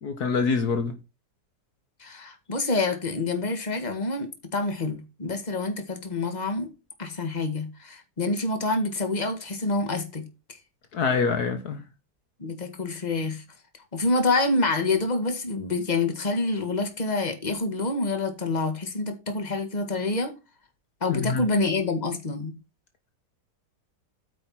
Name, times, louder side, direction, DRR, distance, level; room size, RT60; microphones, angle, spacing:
voice 1, 0.0-1.0 10.9-11.8 21.1-21.4, left 5 dB, 65° left, 1.8 m, -25 dB
voice 2, 2.0-6.7 7.0-10.3 12.4-13.4 13.9-20.3 21.0-22.6, left 3 dB, 25° left, 2.0 m, -27 dB
9.0 x 5.3 x 5.9 m
omnidirectional pair, 1.8 m